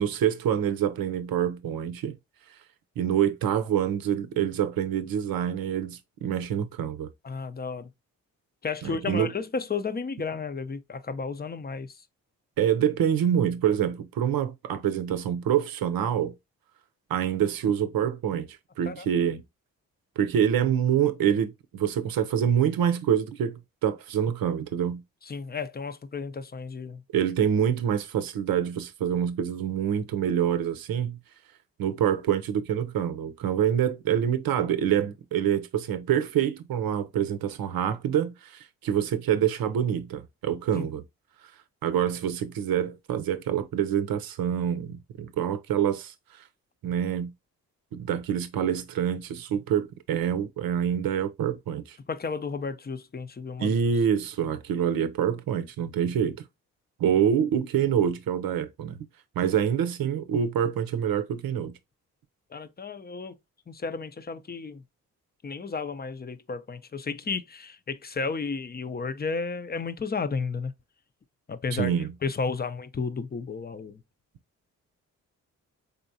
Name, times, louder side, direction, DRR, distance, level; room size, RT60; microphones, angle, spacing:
voice 1, 0.0-2.2 3.0-7.1 8.8-9.3 12.6-16.3 17.1-18.5 18.8-19.4 20.2-25.0 27.1-31.2 31.8-41.0 41.8-46.1 46.8-47.3 47.9-52.0 53.6-56.4 57.0-59.1 59.4-61.7 71.7-72.1, right 9 dB, 70° right, 0.7 m, -26 dB
voice 2, 7.2-7.9 8.6-11.9 18.9-19.1 25.3-27.0 40.7-40.8 52.1-53.7 62.5-63.4 63.7-64.8 65.4-70.7 71.5-71.9 72.2-74.0, left 4 dB, 25° left, 0.6 m, -33 dB
4.0 x 3.4 x 2.7 m
supercardioid pair, 45°, 37 cm